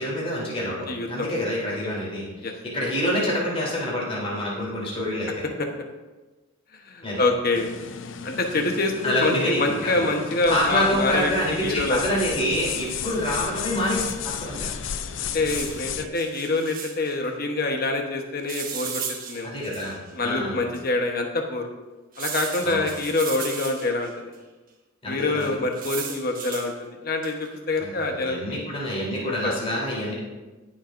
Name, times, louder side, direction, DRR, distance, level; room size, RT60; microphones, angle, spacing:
voice 1, 0.0-5.4 7.0-7.2 9.0-10.1 10.5-14.7 19.4-20.6 22.6-22.9 25.0-25.5 27.8-30.1, left 1 dB, 25° left, -5 dB, 3.5 m, -27 dB
voice 2, 0.7-1.3 2.4-2.5 6.8-7.7 8.2-11.3 11.6-12.2 13.0-13.3 15.2-19.0 19.3-19.5 20.1-21.7 22.2-24.3 25.1-28.6 29.2-29.5, left 2 dB, 45° left, 3 dB, 1.1 m, -26 dB
sound 1, 7.5-16.1, left 7 dB, 60° left, 0.5 m, -34 dB
sound 2, 12.5-13.1 14.1-14.2 14.4-14.5 15.3-17.2 18.5-20.1 20.7-20.8 22.1-24.1 25.4-26.7 27.2-27.5, right 6 dB, 40° right, 1.4 m, -36 dB
20.0 x 7.4 x 2.6 m, 1.2 s
head